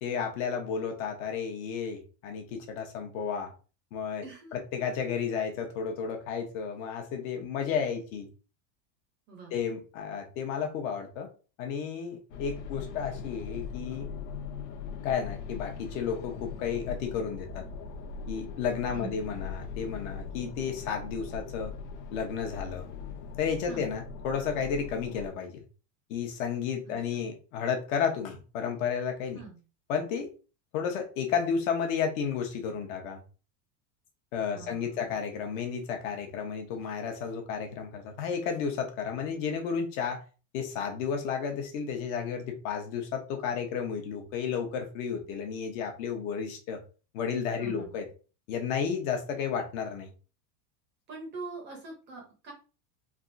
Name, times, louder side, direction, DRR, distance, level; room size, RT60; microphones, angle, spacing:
voice 1, 0.0-3.5 3.9-4.2 4.5-8.3 9.5-11.3 11.6-14.1 15.0-17.6 18.3-21.7 22.1-22.8 23.4-25.6 26.1-29.4 29.9-30.3 30.7-33.2 34.3-40.2 40.5-46.8 47.1-48.1 48.5-50.1, left 6 dB, 55° left, 4 dB, 0.8 m, -32 dB
voice 2, 4.2-4.6 9.3-9.6 18.9-19.2 23.7-23.9 26.9-27.2 29.3-29.6 34.5-35.1 47.6-47.9 51.1-52.5, right 3 dB, 25° right, 0 dB, 0.6 m, -44 dB
sound 1, 12.3-25.3, left 6 dB, 85° left, 0.7 m, -40 dB
3.4 x 2.5 x 2.5 m, 0.35 s
supercardioid pair, 170°, 49 cm